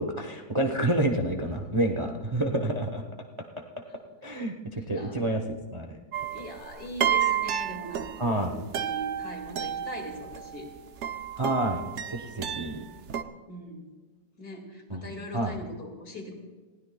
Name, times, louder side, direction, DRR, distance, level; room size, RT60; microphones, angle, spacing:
voice 1, 0.0-3.0 4.2-6.0 8.2-8.5 11.4-12.8 14.9-15.1 15.3-15.6, right 1 dB, 25° right, 3 dB, 0.7 m, -29 dB
voice 2, 4.7-5.2 6.3-10.7 12.4-12.6 13.5-13.9 14.4-16.3, equal, 65° left, 1 dB, 2.8 m, -41 dB
sound 1, 6.1-13.2, right 9 dB, 60° right, 0.8 m, -31 dB
20.5 x 16.0 x 2.3 m, 1.4 s
omnidirectional pair, 1.8 m